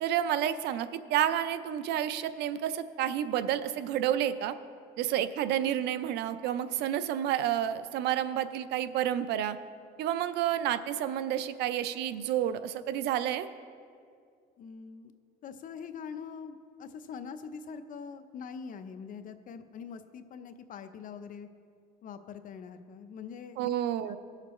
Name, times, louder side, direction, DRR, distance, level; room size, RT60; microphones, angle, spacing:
voice 1, 0.0-4.6 5.0-9.6 10.0-13.5 23.6-24.2, right 11 dB, 80° right, 13 dB, 0.5 m, -30 dB
voice 2, 14.6-15.1 15.4-21.5 22.0-23.7 24.1-24.2, left 6 dB, 50° left, 9 dB, 0.6 m, -43 dB
19.0 x 6.6 x 3.1 m, 2.2 s
cardioid pair, 110°, 17 cm